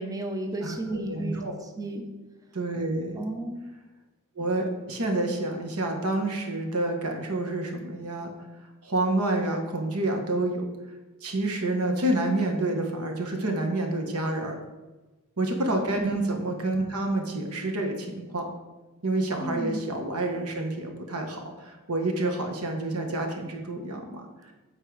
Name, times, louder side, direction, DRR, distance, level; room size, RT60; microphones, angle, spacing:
voice 1, 0.0-1.4 1.8-2.1 3.2-3.6 15.9-16.2 19.4-19.8, right 2 dB, 15° right, 3 dB, 0.6 m, -32 dB
voice 2, 0.6-1.5 2.5-3.3 4.4-8.3 8.8-10.6 11.2-14.6 15.4-18.5 19.0-24.5, right 2 dB, 90° right, 3 dB, 1.3 m, -28 dB
8.0 x 4.3 x 4.8 m, 1.2 s
head